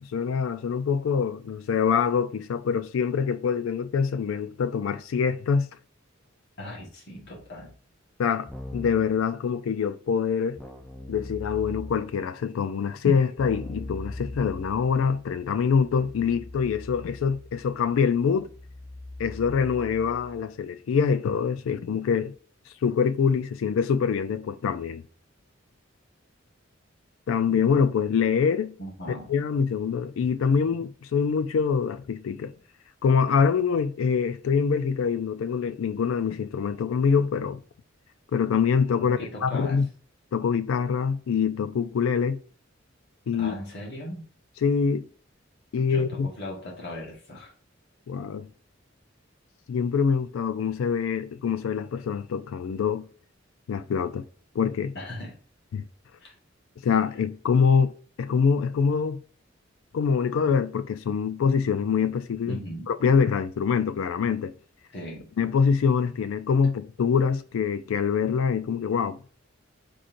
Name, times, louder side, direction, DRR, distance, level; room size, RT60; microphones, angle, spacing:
voice 1, 0.1-5.7 8.2-10.6 11.1-18.5 19.2-22.3 22.8-25.0 27.3-28.7 29.3-32.5 33.0-37.6 38.3-39.9 40.3-42.4 43.3-43.5 44.6-45.1 45.7-46.3 48.1-48.5 49.7-53.1 53.7-54.3 54.6-54.9 55.7-55.8 56.8-57.9 58.2-59.2 59.9-62.6 62.9-64.5 65.4-69.2, left 6 dB, 90° left, 0.3 m, -25 dB
voice 2, 6.6-7.7 28.8-29.3 39.0-39.8 43.3-44.2 45.9-47.5 54.9-55.4 56.2-56.3 62.4-62.9 64.9-65.3, left 1 dB, 60° left, 1.4 m, -38 dB
Keyboard (musical), 8.5-9.1 10.6-12.1 13.4-20.4, left 2 dB, 5° left, 0.4 m, -41 dB
3.8 x 3.1 x 2.5 m
head